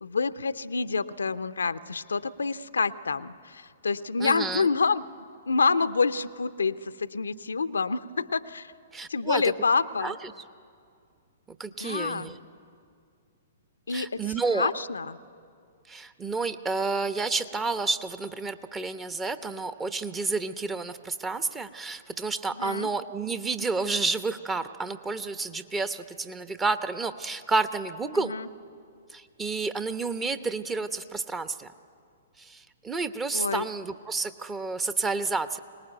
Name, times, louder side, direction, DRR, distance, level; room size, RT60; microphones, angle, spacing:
voice 1, 0.0-5.0 5.5-8.7 9.1-10.2 11.8-12.3 13.9-14.2 14.5-15.2 22.6-22.9 28.3-28.5 33.3-33.6, left 4 dB, 75° left, 12 dB, 0.7 m, -27 dB
voice 2, 4.2-4.7 8.9-9.5 10.0-10.3 11.6-12.4 13.9-14.7 15.9-28.3 29.1-31.7 32.4-35.6, right 3 dB, 15° right, 11 dB, 1.0 m, -30 dB
24.0 x 19.0 x 9.2 m, 2.3 s
figure-of-eight pair, 115°, 0 cm